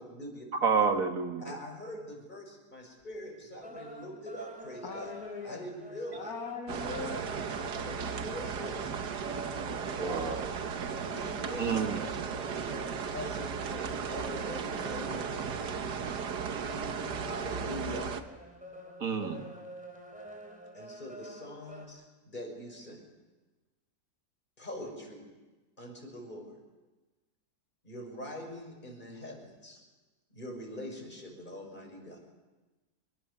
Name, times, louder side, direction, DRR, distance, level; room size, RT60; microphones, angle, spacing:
voice 1, 0.0-0.5 1.4-5.1 5.4-6.3 6.7-8.8 11.2-12.1 12.4-15.3 17.2-18.1 20.7-23.0 24.6-25.2 25.8-26.5 27.8-29.8 30.3-32.2, left 1 dB, 30° left, 1 dB, 6.1 m, -43 dB
voice 2, 0.6-1.5 9.9-10.6 11.6-12.1 19.0-19.4, right 5 dB, 55° right, 5 dB, 2.3 m, -29 dB
sound 1, 3.0-3.1 3.4-21.9, equal, 5° right, 3.9 m, -47 dB
voice 3, 4.8-5.6 6.1-7.2 14.8-15.7, left 5 dB, 65° left, 3 dB, 2.1 m, -42 dB
sound 2, 6.7-18.2, right 6 dB, 90° right, 1.8 m, -36 dB
25.5 x 23.0 x 6.8 m, 1.2 s
omnidirectional pair, 1.7 m